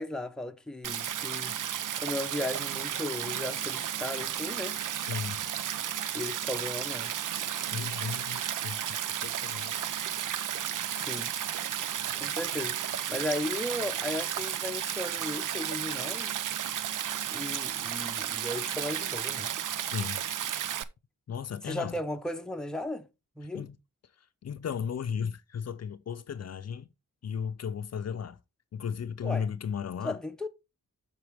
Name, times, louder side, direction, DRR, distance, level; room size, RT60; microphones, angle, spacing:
voice 1, 0.0-1.5 2.0-4.8 6.1-7.2 10.9-11.3 12.2-16.3 17.3-19.5 21.6-23.1 23.4-23.6 29.2-29.5 30.0-30.5, left 1 dB, ahead, 0.7 m, -36 dB
Stream, 0.8-20.8, right 10 dB, 70° right, 0.6 m, -33 dB
voice 2, 5.0-5.4 7.7-9.8 19.9-20.2 21.3-22.0 23.5-23.8 24.2-26.9 27.2-28.4 28.7-30.2, left 7 dB, 50° left, 0.6 m, -35 dB
7.8 x 6.0 x 3.4 m
wide cardioid pair, 120°, 32 cm